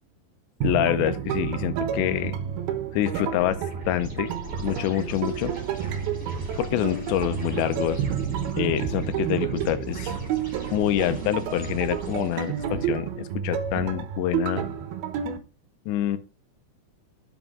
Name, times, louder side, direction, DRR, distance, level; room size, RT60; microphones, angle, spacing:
voice 1, 0.6-2.4 2.9-4.3 4.6-5.5 6.6-8.0 8.6-10.2 10.7-14.6 15.9-16.2, left 13 dB, 90° left, 10 dB, 3.0 m, -26 dB
sound 1, 0.6-15.4, right 9 dB, 70° right, 2.7 m, -30 dB
sound 2, 3.3-12.7, right 2 dB, 15° right, 2.8 m, -38 dB
11.0 x 6.0 x 3.8 m, 0.32 s
omnidirectional pair, 5.1 m